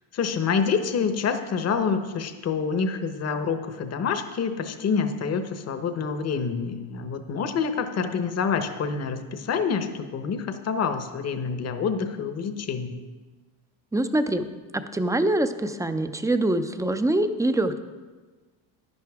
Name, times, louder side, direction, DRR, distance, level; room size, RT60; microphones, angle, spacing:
voice 1, 0.1-12.9, left 5 dB, 35° left, 8 dB, 0.9 m, -27 dB
voice 2, 13.9-14.4 14.7-17.8, right 1 dB, 5° right, 9 dB, 0.5 m, -24 dB
10.5 x 10.5 x 3.6 m, 1.3 s
supercardioid pair, 100°, 46 cm